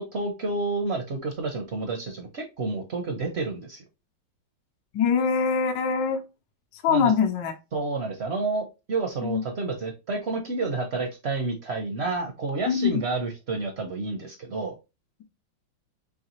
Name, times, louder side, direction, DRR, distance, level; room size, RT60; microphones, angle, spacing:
voice 1, 0.0-3.8 6.9-7.1 7.7-14.7, right 3 dB, 60° right, 4 dB, 0.6 m, -30 dB
voice 2, 4.9-6.2 6.7-7.5 9.2-9.4 12.7-13.0, left 6 dB, 75° left, 6 dB, 1.3 m, -23 dB
4.7 x 3.2 x 3.0 m, 0.27 s
omnidirectional pair, 2.1 m